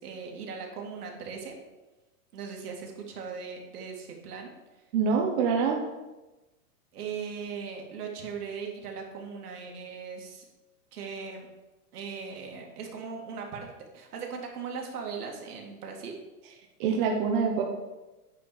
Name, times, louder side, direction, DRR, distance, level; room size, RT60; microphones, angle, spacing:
voice 1, 0.0-1.6 2.3-4.5 6.9-10.4 10.9-11.5 11.9-16.2, right 5 dB, 75° right, 1 dB, 2.5 m, -39 dB
voice 2, 4.9-5.8 16.8-17.6, right 5 dB, 35° right, 1 dB, 1.0 m, -25 dB
9.2 x 4.5 x 7.0 m, 1.1 s
supercardioid pair, 160°, 47 cm